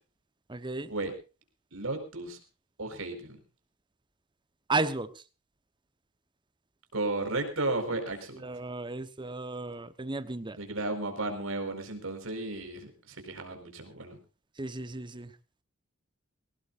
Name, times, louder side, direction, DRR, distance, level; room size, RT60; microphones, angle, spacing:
voice 1, 0.5-0.9 4.7-5.1 8.4-10.6 14.6-15.3, right 3 dB, 25° right, 13 dB, 1.0 m, -33 dB
voice 2, 1.7-2.4 2.8-3.4 6.9-8.4 10.6-14.2, right 2 dB, 85° right, 6 dB, 4.6 m, -34 dB
22.0 x 18.0 x 2.5 m, 0.32 s
head